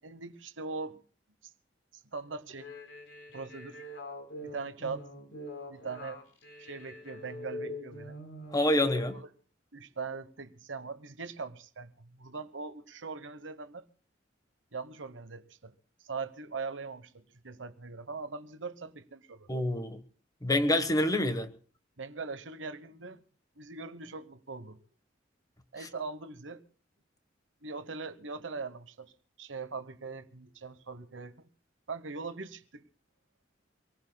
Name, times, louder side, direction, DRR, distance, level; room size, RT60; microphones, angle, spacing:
voice 1, 0.0-1.0 1.4-1.5 2.1-2.7 3.3-3.8 4.4-5.1 5.7-6.2 6.6-8.2 9.1-9.2 9.7-13.9 14.7-15.7 16.0-19.5 22.0-23.2 23.6-24.8 25.7-26.6 27.6-29.1 29.4-31.5 31.9-32.8, right 4 dB, 85° right, 1.2 m, -41 dB
sound 1, 2.5-9.2, left 1 dB, 75° left, 4.3 m, -43 dB
voice 2, 8.5-9.1 19.5-20.0 20.4-21.5, left 1 dB, 20° left, 1.3 m, -27 dB
26.0 x 19.0 x 2.3 m
head